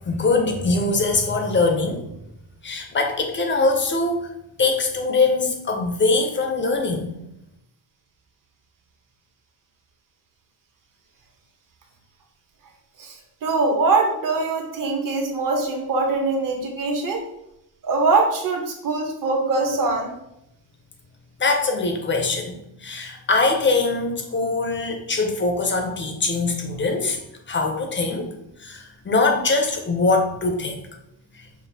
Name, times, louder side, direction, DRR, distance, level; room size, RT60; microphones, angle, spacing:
voice 1, 0.1-2.0 2.6-4.3 4.6-7.1 21.4-27.2 27.5-28.3 28.6-30.8, left 3 dB, 25° left, 4 dB, 0.4 m, -22 dB
voice 2, 13.0-17.2 17.8-20.1, right 3 dB, 40° right, 2 dB, 0.8 m, -22 dB
5.1 x 2.4 x 2.7 m, 0.80 s
cardioid pair, 145°, 48 cm